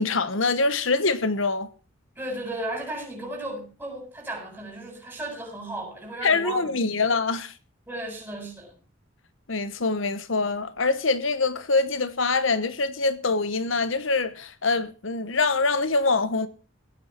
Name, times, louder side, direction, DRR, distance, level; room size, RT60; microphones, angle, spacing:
voice 1, 0.0-1.7 6.2-7.5 9.5-16.5, left 3 dB, 75° left, 1.2 m, -24 dB
voice 2, 2.2-7.0 7.9-8.7, right 1 dB, 10° right, 7.7 m, -35 dB
17.5 x 9.6 x 5.9 m
head